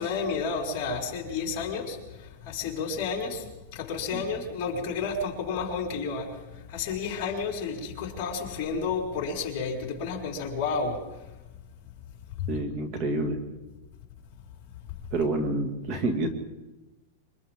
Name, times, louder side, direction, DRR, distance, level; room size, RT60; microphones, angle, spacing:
voice 1, 0.0-3.5 3.7-11.2 12.4-12.5, left 5 dB, 35° left, -2 dB, 4.9 m, -31 dB
voice 2, 12.5-13.4 15.1-16.3, right 2 dB, 35° right, 4 dB, 2.3 m, -28 dB
27.0 x 25.5 x 3.8 m, 1.1 s
supercardioid pair, 165°, 0 cm